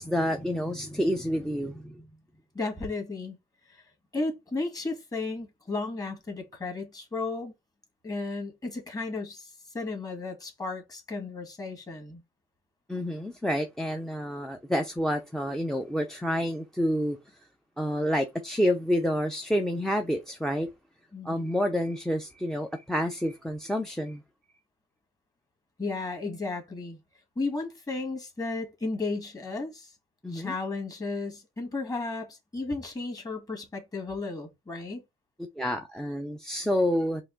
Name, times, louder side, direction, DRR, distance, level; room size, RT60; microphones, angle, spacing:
voice 1, 0.0-2.0 12.9-17.2 17.8-20.7 21.2-24.2 30.2-30.5 35.6-37.2, equal, 5° left, 0.6 m, -28 dB
voice 2, 2.5-3.4 3.7-3.8 4.1-7.5 8.0-12.2 21.1-21.5 25.8-27.0 27.4-29.9 30.3-35.0, left 3 dB, 20° left, 1.8 m, -34 dB
4.7 x 2.6 x 3.7 m
cardioid pair, 110°, 17 cm